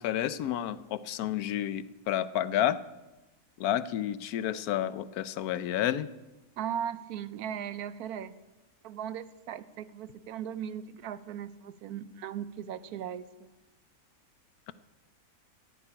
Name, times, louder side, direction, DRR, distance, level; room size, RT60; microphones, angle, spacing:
voice 1, 0.0-2.8 3.6-6.1, left 11 dB, 75° left, 15 dB, 1.1 m, -30 dB
voice 2, 6.6-8.3 8.8-13.5, right 9 dB, 75° right, 15 dB, 1.2 m, -38 dB
14.5 x 6.9 x 9.9 m, 1.1 s
omnidirectional pair, 1.6 m